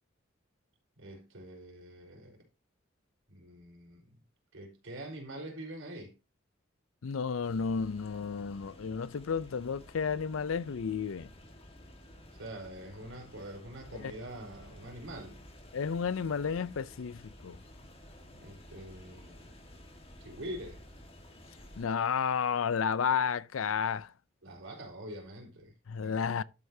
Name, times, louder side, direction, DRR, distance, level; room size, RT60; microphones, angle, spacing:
voice 1, 1.0-2.4 3.3-4.2 4.5-6.1 12.3-15.4 18.3-19.5 20.2-20.8 24.4-25.7 26.0-26.3, right 1 dB, 80° right, 4.2 m, -45 dB
voice 2, 7.0-11.3 14.0-14.1 15.7-17.6 21.8-24.1 25.9-26.4, left 6 dB, 90° left, 0.5 m, -32 dB
sound 1, 7.4-21.8, left 1 dB, 30° left, 1.6 m, -53 dB
12.0 x 8.0 x 2.8 m
head